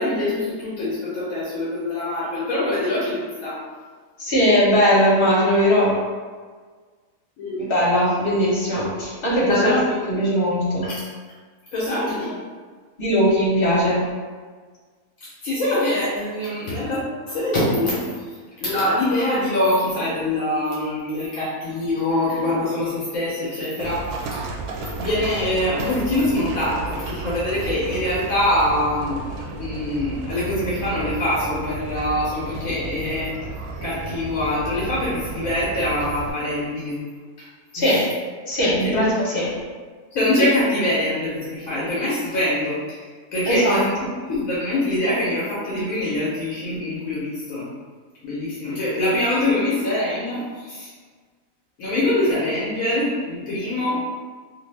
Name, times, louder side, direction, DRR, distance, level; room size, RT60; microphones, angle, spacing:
voice 1, 0.0-3.6 7.4-7.7 9.5-9.8 10.8-11.0 11.7-12.4 15.2-17.0 17.3-18.0 18.6-24.4 25.0-33.3 33.8-37.0 37.4-37.5 37.8-38.0 38.8-39.0 40.1-43.9 44.3-47.7 48.2-50.9 51.8-54.1, left 1 dB, 70° left, -8 dB, 1.2 m, -24 dB
voice 2, 4.2-5.9 7.7-9.7 10.1-10.9 13.0-14.0 37.7-38.0 38.5-39.5 43.5-43.8, equal, 40° left, -8 dB, 1.4 m, -19 dB
Livestock farm animals working animals, 23.8-36.3, right 3 dB, 90° right, 1.1 m, -33 dB
2.9 x 2.6 x 3.3 m, 1.5 s
omnidirectional pair, 1.5 m